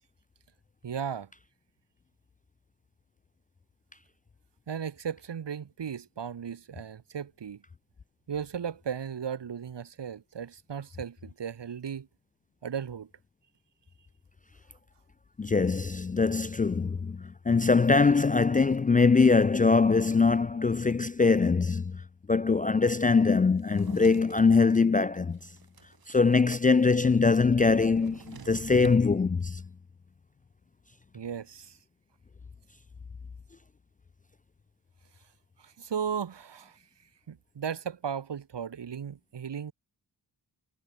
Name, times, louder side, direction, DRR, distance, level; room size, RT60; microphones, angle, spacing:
voice 1, 0.8-1.3 4.7-7.6 8.3-12.1 12.6-13.1 31.1-31.8 35.6-36.8 37.3-39.7, right 7 dB, 75° right, 1.8 m, -36 dB
voice 2, 15.4-22.0 22.3-25.4 26.1-29.6, left 4 dB, 20° left, 0.3 m, -23 dB
Drawer open or close, 23.5-24.6 25.2-26.7 26.9-27.0 27.2-29.0, right 7 dB, 55° right, 1.4 m, -48 dB
cardioid pair, 55°, 42 cm